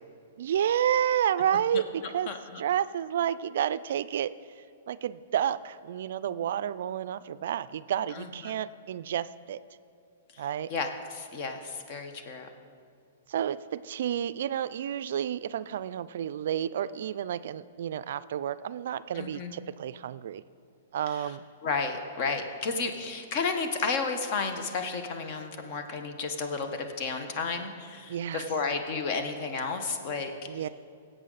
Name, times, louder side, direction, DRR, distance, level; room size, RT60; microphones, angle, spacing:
voice 1, 0.4-4.3 4.9-9.6 10.4-10.7 13.3-20.4 20.9-21.4 28.1-28.5 30.5-30.7, right 10 dB, 65° right, 15 dB, 0.3 m, -30 dB
voice 2, 8.2-8.5 10.7-12.5 19.1-19.6 21.2-21.3 21.6-30.3, left 4 dB, 45° left, 6 dB, 1.2 m, -32 dB
17.5 x 7.9 x 4.0 m, 2.5 s
hypercardioid pair, 125°, 0 cm